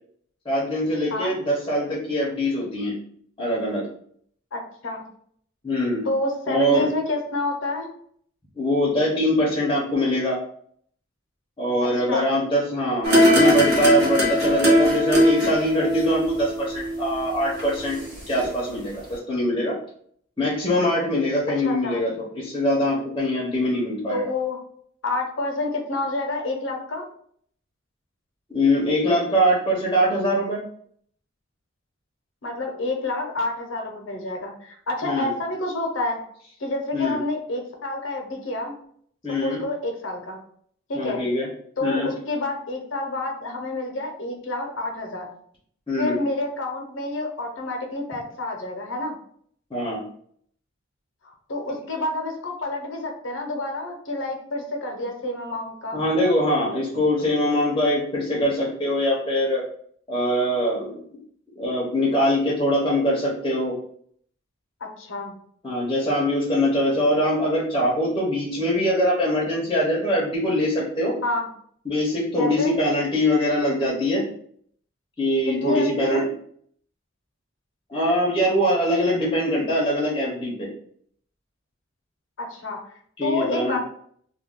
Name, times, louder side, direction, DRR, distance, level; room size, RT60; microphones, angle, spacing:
voice 1, 0.5-3.0 3.4-3.9 5.6-6.0 6.5-6.9 8.6-10.4 11.6-19.8 20.4-24.3 28.5-30.6 35.0-35.3 36.9-37.2 39.2-39.6 40.9-41.5 41.8-42.1 45.9-46.2 49.7-50.0 55.9-59.6 60.1-61.0 61.6-63.8 65.6-71.2 71.9-74.2 75.2-76.3 77.9-80.7 83.2-83.8, equal, 20° left, -4 dB, 0.6 m, -23 dB
voice 2, 4.5-5.0 6.0-7.9 11.9-12.2 21.6-22.0 24.1-24.6 25.0-27.1 32.4-36.2 36.6-38.8 39.4-40.4 40.9-41.2 41.8-45.3 46.0-49.1 51.2-56.0 65.0-65.3 71.2-71.5 72.4-72.7 75.6-76.2 82.4-82.8 83.2-83.8, left 2 dB, 70° left, 2 dB, 0.7 m, -28 dB
sound 1, 13.0-18.1 18.4-18.5, equal, 55° right, 0.8 m, -20 dB
2.3 x 2.2 x 3.5 m, 0.63 s
head